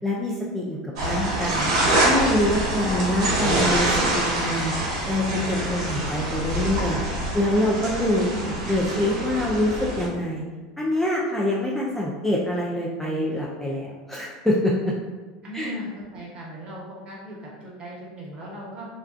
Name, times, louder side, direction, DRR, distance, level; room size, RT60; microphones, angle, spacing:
voice 1, 0.0-1.7 2.0-4.7 5.1-7.0 7.3-10.4 10.8-14.9 15.5-15.7, left 1 dB, 5° left, -4 dB, 0.3 m, -25 dB
sound 1, 1.0-10.1, right 1 dB, 75° right, 0.7 m, -25 dB
voice 2, 8.2-8.6 15.4-18.9, left 1 dB, 35° right, -4 dB, 0.9 m, -37 dB
2.3 x 2.2 x 2.4 m, 1.3 s
supercardioid pair, 115°, 3 cm